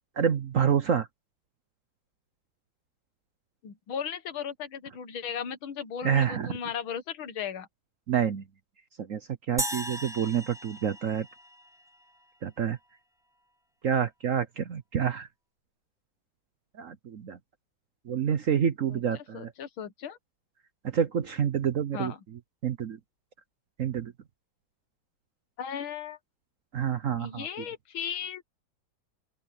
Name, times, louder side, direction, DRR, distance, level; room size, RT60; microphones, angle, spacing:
voice 1, 0.2-1.1 6.0-6.6 8.1-8.4 9.0-9.2 9.5-11.3 12.4-12.8 13.8-15.3 16.8-17.4 18.1-19.5 20.8-22.1 22.6-23.0 23.8-24.1 26.7-27.5, right 8 dB, 55° right, 0.9 m, -28 dB
voice 2, 3.6-7.7 18.9-20.2 21.9-22.2 25.6-26.2 27.2-28.4, left 8 dB, 90° left, 2.2 m, -36 dB
sound 1, 9.6-12.0, right 1 dB, ahead, 5.5 m, -36 dB
open air
omnidirectional pair, 2.2 m